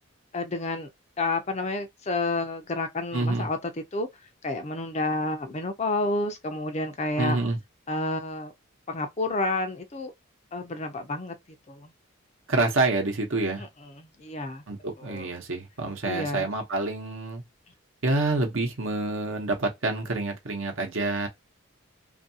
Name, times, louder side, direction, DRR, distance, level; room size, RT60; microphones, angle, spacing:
voice 1, 0.3-0.9 1.2-4.1 4.4-7.4 7.9-8.5 8.9-10.1 10.5-11.3 11.7-11.9 13.6-14.6 15.0-15.3 16.0-16.5, left 2 dB, 30° left, 0.5 m, -30 dB
voice 2, 3.1-3.5 7.2-7.6 12.5-13.7 14.7-17.4 18.0-21.3, right 2 dB, 65° right, 0.9 m, -27 dB
2.7 x 2.5 x 2.7 m
head